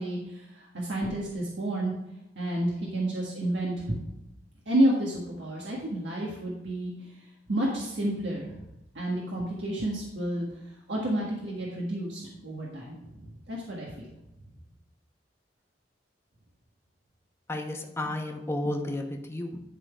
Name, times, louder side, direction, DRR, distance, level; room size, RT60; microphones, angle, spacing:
voice 1, 0.0-1.9 2.3-4.0 4.7-7.1 7.5-8.6 8.9-10.5 10.9-14.1, right 1 dB, 80° right, -4 dB, 1.5 m, -30 dB
voice 2, 17.5-19.6, left 1 dB, 15° left, 2 dB, 0.9 m, -32 dB
11.0 x 3.9 x 4.9 m, 0.89 s
head